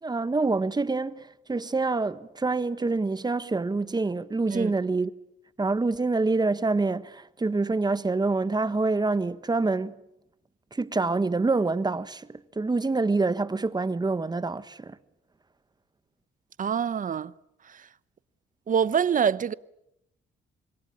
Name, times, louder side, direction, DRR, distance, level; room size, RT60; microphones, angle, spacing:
voice 1, 0.0-5.1 5.6-10.0 10.7-15.0, right 3 dB, 20° right, 1.5 m, -26 dB
voice 2, 16.6-17.3 17.7-17.9 18.7-19.5, right 7 dB, 40° right, 1.0 m, -25 dB
26.5 x 22.5 x 8.8 m
cardioid pair, 90°, 20 cm